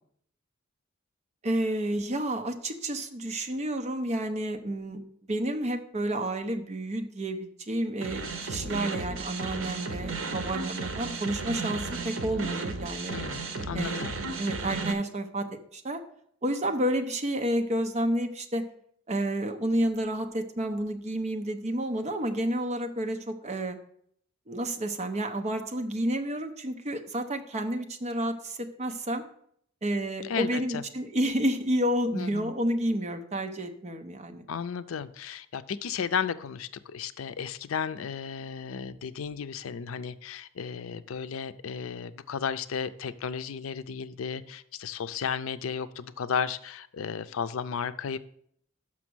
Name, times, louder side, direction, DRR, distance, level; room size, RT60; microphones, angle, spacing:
voice 1, 1.4-13.2 13.7-14.0 14.3-16.0 16.4-18.6 19.1-23.8 24.5-29.2 29.8-34.4, right 1 dB, 35° right, 6 dB, 0.7 m, -30 dB
sound 1, 8.0-14.9, right 3 dB, 75° right, 0.9 m, -34 dB
voice 2, 13.1-14.2 30.2-30.8 32.1-32.5 34.5-48.2, left 6 dB, 85° left, 13 dB, 0.4 m, -34 dB
6.1 x 5.9 x 6.1 m, 0.66 s
head